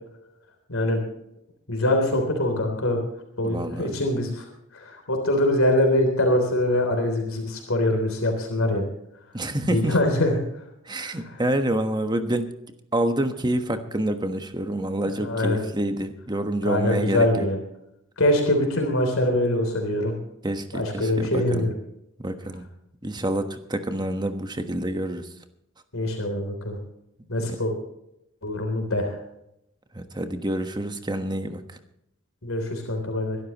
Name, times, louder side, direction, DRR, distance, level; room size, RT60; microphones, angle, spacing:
voice 1, 0.7-1.0 1.7-3.0 3.4-4.5 4.7-8.9 9.7-10.4 11.0-11.4 15.1-15.6 16.7-17.6 18.2-20.1 20.7-21.7 25.9-26.8 27.3-27.7 28.4-29.2 32.4-33.4, left 1 dB, 75° left, 4 dB, 3.5 m, -23 dB
voice 2, 3.4-3.9 9.3-10.0 10.9-12.5 12.9-17.4 20.4-21.7 22.2-22.7 23.0-25.3 27.4-27.6 29.9-31.8, right 1 dB, 20° right, 7 dB, 1.3 m, -27 dB
23.5 x 12.5 x 3.0 m, 0.81 s
head